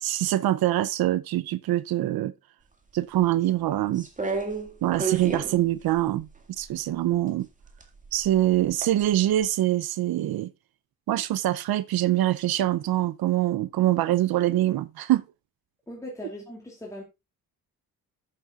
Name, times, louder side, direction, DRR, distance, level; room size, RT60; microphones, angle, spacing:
voice 1, 0.0-2.3 2.9-4.1 4.8-6.3 6.6-7.5 8.1-10.5 11.1-15.2, right 14 dB, 80° right, 0.6 m, -24 dB
sound 1, 4.0-6.7 7.6-9.1 9.4-9.5, right 4 dB, 20° right, 2.0 m, -32 dB
voice 2, 15.9-17.0, left 1 dB, 10° left, 2.5 m, -39 dB
13.5 x 7.7 x 2.4 m
cardioid pair, 130°, 36 cm